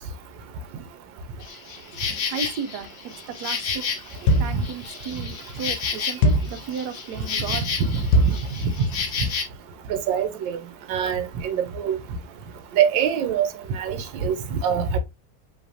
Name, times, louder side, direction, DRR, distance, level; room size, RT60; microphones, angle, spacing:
Insect, 1.4-9.4, left 6 dB, 60° left, 0.6 m, -31 dB
voice 1, 2.3-3.8 4.3-7.7, right 6 dB, 70° right, 1.2 m, -34 dB
sound 1, 4.3-4.7 6.2-6.6 8.1-8.5, equal, 75° left, 1.2 m, -19 dB
voice 2, 9.9-10.6 10.9-12.0 12.8-13.5 13.8-15.0, right 8 dB, 90° right, 1.4 m, -24 dB
5.1 x 3.3 x 2.6 m
omnidirectional pair, 2.0 m